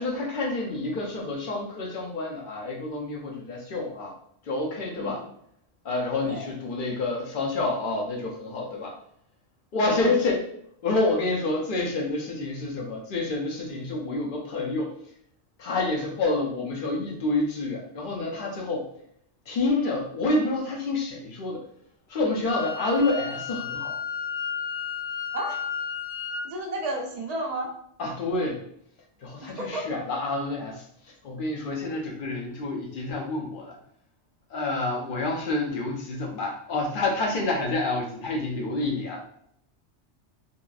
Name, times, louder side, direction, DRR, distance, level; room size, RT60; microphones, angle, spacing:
voice 1, 0.0-4.1 4.5-5.2 5.8-8.9 9.7-10.5 10.8-14.9 15.6-18.9 19.5-21.6 22.1-23.9 28.0-28.6 29.2-30.8 31.2-33.8 34.5-39.2, left 2 dB, 55° left, 0 dB, 0.7 m, -28 dB
voice 2, 4.9-5.3 6.2-6.5 10.1-10.2 25.3-25.6 26.4-27.7 29.4-29.9, right 1 dB, 50° right, 1 dB, 0.5 m, -32 dB
Wind instrument woodwind instrument, 22.5-26.5, left 6 dB, 90° left, 0.9 m, -33 dB
2.8 x 2.4 x 2.3 m, 0.71 s
omnidirectional pair, 1.2 m